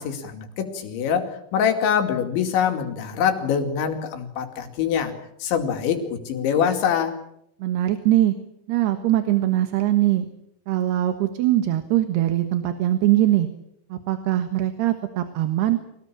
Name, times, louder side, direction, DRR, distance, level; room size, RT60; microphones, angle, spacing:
voice 1, 0.0-5.1 5.4-7.1, left 7 dB, 85° left, 6 dB, 4.8 m, -24 dB
voice 2, 7.6-8.3 8.7-10.3 10.7-13.5 13.9-15.8, right 14 dB, 70° right, 8 dB, 3.3 m, -21 dB
26.0 x 18.5 x 8.7 m, 0.75 s
omnidirectional pair, 5.2 m